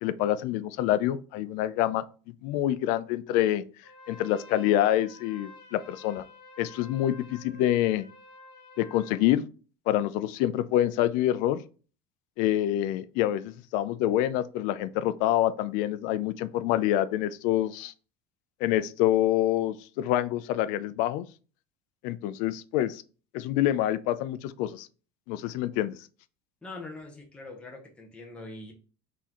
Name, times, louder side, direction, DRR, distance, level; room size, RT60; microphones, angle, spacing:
voice 1, 0.0-2.0 2.4-3.6 4.1-6.2 6.6-8.1 8.8-9.5 9.9-11.6 12.4-17.9 18.6-21.3 22.0-23.0 23.3-24.9 25.3-26.0, left 13 dB, 70° left, 0.4 m, -26 dB
Trumpet, 3.8-9.2, left 2 dB, 35° left, 1.9 m, -50 dB
voice 2, 26.6-28.7, left 2 dB, 10° left, 0.8 m, -43 dB
4.1 x 3.7 x 2.9 m
cardioid pair, 150°, 14 cm